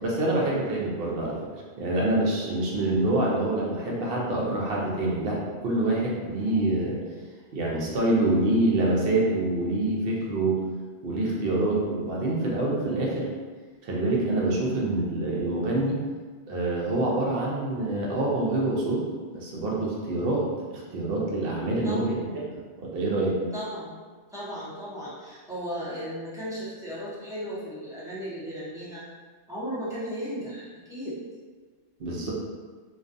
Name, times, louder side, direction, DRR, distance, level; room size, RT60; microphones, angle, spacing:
voice 1, 0.0-1.4 1.8-7.0 7.5-10.6 11.0-13.3 13.8-16.0 16.5-19.0 19.3-20.4 20.7-22.1 22.5-23.4 32.0-32.3, right 2 dB, 60° right, -3 dB, 0.7 m, -26 dB
voice 2, 21.8-22.2 23.5-24.0 24.3-29.0 29.5-31.2, equal, 5° right, -11 dB, 0.3 m, -36 dB
2.4 x 2.2 x 2.5 m, 1.5 s
omnidirectional pair, 1.2 m